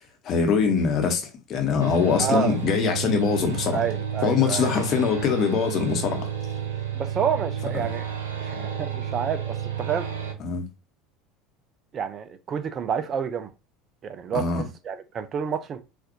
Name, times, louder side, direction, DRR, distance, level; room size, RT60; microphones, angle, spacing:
voice 1, 0.2-1.2 1.5-3.8 4.2-6.3 10.4-10.6 14.3-14.6, left 6 dB, 40° left, 0.9 m, -23 dB
sound 1, 1.8-10.3, right 8 dB, 75° right, 0.7 m, -31 dB
voice 2, 2.2-2.6 3.7-4.7 6.9-8.1 8.4-10.1 11.9-13.5 14.0-14.4 14.8-15.8, right 7 dB, 35° right, 0.4 m, -29 dB
4.1 x 2.5 x 2.7 m
figure-of-eight pair, 70°, 0 cm